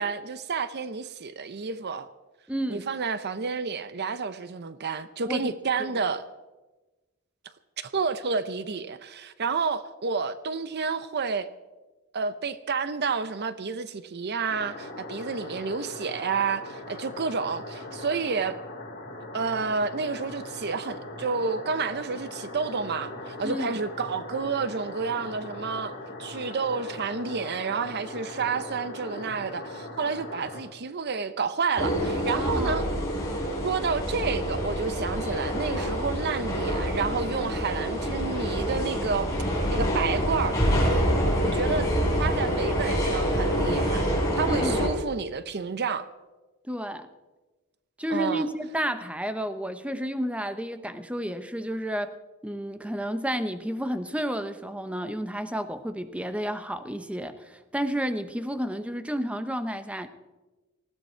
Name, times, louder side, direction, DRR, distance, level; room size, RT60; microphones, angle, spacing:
voice 1, 0.0-2.1 2.7-6.3 7.8-11.5 12.1-18.6 19.3-25.9 26.2-32.8 33.6-39.3 39.7-40.6 41.4-41.9 42.2-44.1 44.3-46.1 48.1-48.5, right 5 dB, 55° right, 0.7 m, -30 dB
voice 2, 2.5-2.9 5.3-5.5 23.4-23.7 32.3-32.8 44.5-44.9 46.7-47.1 48.0-52.2 52.4-60.1, equal, 5° right, 0.9 m, -31 dB
sound 1, 14.5-30.6, left 2 dB, 55° left, 5.0 m, -40 dB
sound 2, 31.8-44.9, equal, 15° left, 5.0 m, -26 dB
19.5 x 15.5 x 4.5 m
head